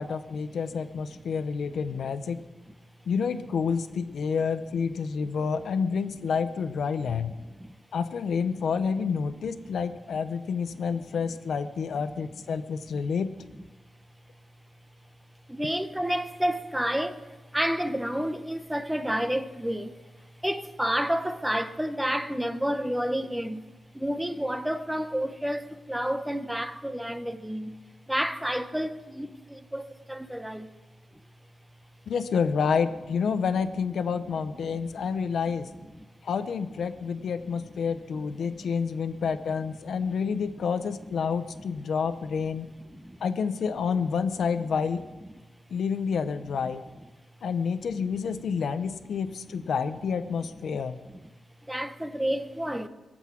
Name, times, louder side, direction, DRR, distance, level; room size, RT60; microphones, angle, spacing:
voice 1, 0.0-2.4 3.1-7.3 7.9-13.3 32.1-35.7 36.2-42.7 43.2-45.0 45.7-46.8 47.4-51.0, left 6 dB, 80° left, 0.8 m, -29 dB
voice 2, 7.4-7.7 9.6-9.7 15.5-20.1 20.4-23.6 23.9-27.8 28.1-30.7 34.7-35.1 37.2-37.3 38.5-38.7 39.9-40.1 42.9-43.2 44.0-44.1 46.6-46.7 47.9-48.1 48.6-48.7 50.7-50.8 51.7-52.9, equal, 5° right, 1.0 m, -30 dB
23.0 x 8.0 x 6.2 m
wide cardioid pair, 105°, 0 cm